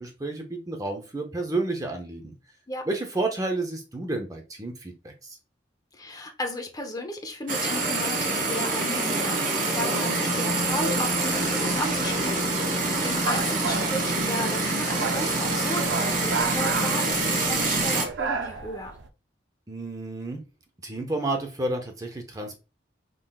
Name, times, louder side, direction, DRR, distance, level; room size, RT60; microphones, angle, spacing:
voice 1, 0.0-2.3 2.9-5.4 19.7-20.4 20.8-22.6, right 2 dB, 20° right, 0.6 m, -31 dB
voice 2, 5.9-19.0, left 1 dB, 20° left, 0.7 m, -34 dB
sound 1, 7.5-18.1, right 2 dB, 45° right, 1.0 m, -26 dB
sound 2, 10.6-19.1, right 5 dB, 70° right, 0.5 m, -34 dB
4.9 x 3.8 x 2.3 m
head